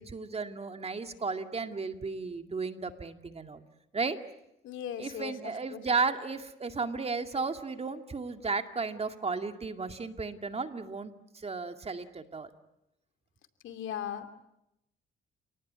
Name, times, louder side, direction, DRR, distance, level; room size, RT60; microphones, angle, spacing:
voice 1, 0.0-3.6 3.9-4.2 5.0-12.5, right 4 dB, 30° right, 7 dB, 2.2 m, -34 dB
voice 2, 4.6-5.3 5.7-5.8 13.6-14.3, left 9 dB, 75° left, 8 dB, 2.6 m, -37 dB
29.5 x 19.0 x 9.6 m, 0.86 s
cardioid pair, 90°, 20 cm